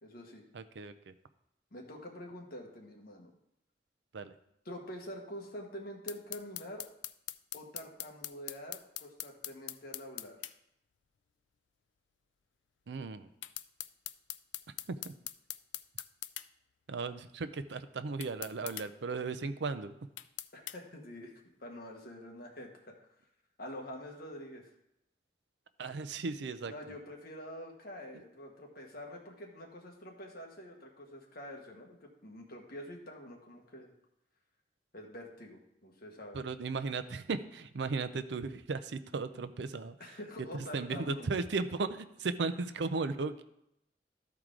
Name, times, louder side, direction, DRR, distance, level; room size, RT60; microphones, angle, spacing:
voice 1, 0.0-0.4 1.7-3.3 4.6-6.8 7.5-10.4 20.5-21.3 21.6-23.1 23.6-24.7 26.7-33.9 34.9-36.4 40.0-41.3, equal, 55° left, 1 dB, 1.5 m, -46 dB
voice 2, 0.5-1.1 4.1-4.3 12.9-13.3 14.9-15.1 16.9-19.9 25.8-26.7 36.3-40.0 40.5-43.4, right 4 dB, 70° right, 10 dB, 0.5 m, -36 dB
sound 1, 6.1-10.6 13.4-16.5 18.2-18.9 20.2-20.8, left 14 dB, 80° left, 0.4 m, -42 dB
13.5 x 4.7 x 3.7 m, 0.79 s
head